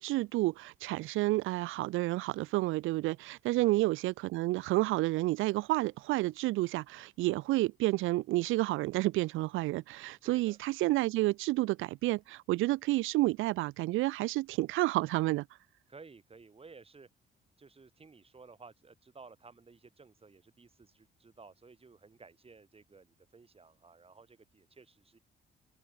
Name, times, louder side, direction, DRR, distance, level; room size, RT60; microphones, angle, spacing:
voice 1, 0.0-15.5, right 19 dB, 85° right, 0.4 m, -30 dB
voice 2, 10.2-10.6 15.9-17.1 17.6-25.2, right 4 dB, 30° right, 4.9 m, -55 dB
open air
cardioid pair, 90°, 20 cm